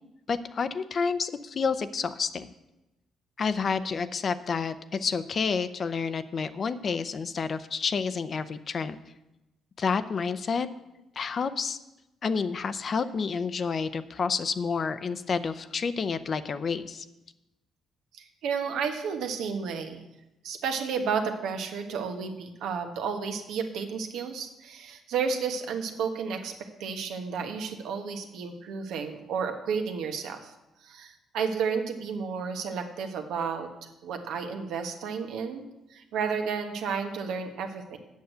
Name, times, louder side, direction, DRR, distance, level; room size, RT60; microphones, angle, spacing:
voice 1, 0.3-2.5 3.4-9.0 9.8-10.7 11.2-11.8 12.2-17.0, left 5 dB, 45° left, 12 dB, 0.6 m, -29 dB
voice 2, 18.1-20.0 20.4-30.5 30.8-33.7 34.0-35.6 35.9-38.0, right 6 dB, 85° right, 5 dB, 1.3 m, -32 dB
8.2 x 6.5 x 8.0 m, 0.95 s
cardioid pair, 90°, 0 cm